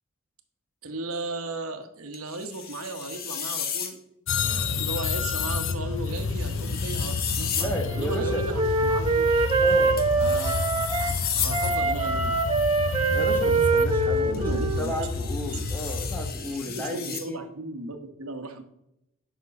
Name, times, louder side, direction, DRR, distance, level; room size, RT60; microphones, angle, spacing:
voice 1, 0.8-4.0 4.3-9.2 10.2-10.5 11.4-12.4 14.1-14.9 16.5-18.6, right 2 dB, 75° right, 6 dB, 1.1 m, -36 dB
sound 1, 2.1-3.9 6.2-7.7 10.0-11.6 14.3-17.3, left 8 dB, 45° left, 1.0 m, -34 dB
sound 2, 4.3-16.3, left 4 dB, 60° left, 0.6 m, -29 dB
voice 2, 7.6-8.5 9.6-10.0 13.1-17.4, equal, 10° left, 4 dB, 1.1 m, -33 dB
Wind instrument woodwind instrument, 7.6-11.2 11.5-15.3, right 3 dB, 25° right, 0.8 m, -24 dB
8.3 x 6.1 x 5.2 m, 0.83 s
head